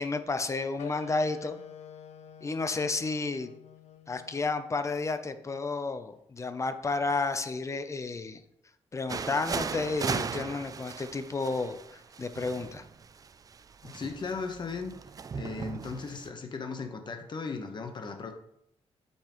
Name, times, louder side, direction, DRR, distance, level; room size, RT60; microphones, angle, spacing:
voice 1, 0.0-1.6 2.4-3.5 4.1-8.4 8.9-12.8, left 3 dB, 30° left, 10 dB, 0.6 m, -31 dB
sound 1, 0.8-5.9, left 8 dB, 85° left, 0.6 m, -48 dB
sound 2, 9.1-16.3, right 5 dB, 35° right, 0.3 m, -37 dB
voice 2, 13.8-14.9 15.3-18.3, left 4 dB, 45° left, 5 dB, 1.1 m, -37 dB
8.4 x 5.6 x 3.1 m, 0.77 s
cardioid pair, 105°, 11 cm